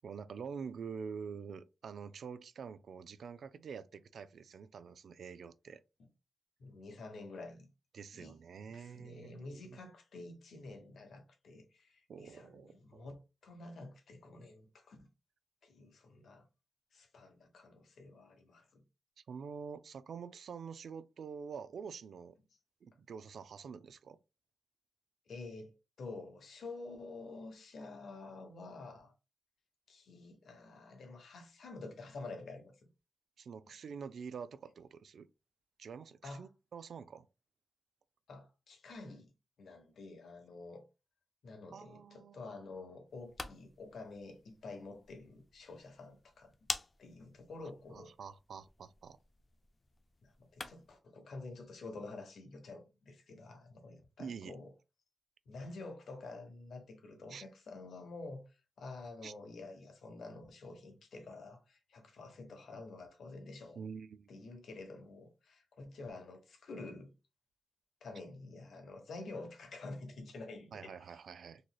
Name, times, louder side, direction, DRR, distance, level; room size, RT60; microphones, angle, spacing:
voice 1, 0.0-5.8 7.9-9.8 12.1-13.1 19.3-22.4 22.8-24.2 33.4-35.3 35.8-37.3 41.7-42.6 47.9-49.2 54.2-54.6 57.3-57.4 59.2-59.3 63.7-64.3 70.7-71.6, right 6 dB, 75° right, 0.3 m, -47 dB
voice 2, 6.6-7.7 8.1-8.3 8.7-15.1 15.6-16.5 16.9-18.8 25.3-25.7 26.0-29.1 29.9-32.7 36.2-36.4 38.3-39.3 39.6-40.8 41.4-46.5 47.0-48.1 50.2-54.7 55.5-63.8 64.3-67.1 68.0-70.9, left 3 dB, 80° left, 1.0 m, -49 dB
sound 1, 43.1-51.0, left 3 dB, 30° left, 0.4 m, -48 dB
3.9 x 3.1 x 2.3 m
wide cardioid pair, 150°, 0 cm